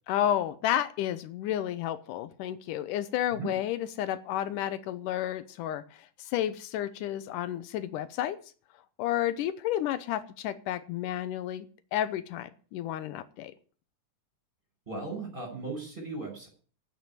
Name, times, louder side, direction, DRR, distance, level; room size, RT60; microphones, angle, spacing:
voice 1, 0.1-8.4 9.0-11.7 11.9-13.5, left 11 dB, 85° left, 14 dB, 2.4 m, -31 dB
voice 2, 14.9-16.5, right 3 dB, 15° right, 2 dB, 6.3 m, -37 dB
9.6 x 9.5 x 9.8 m, 0.41 s
omnidirectional pair, 3.6 m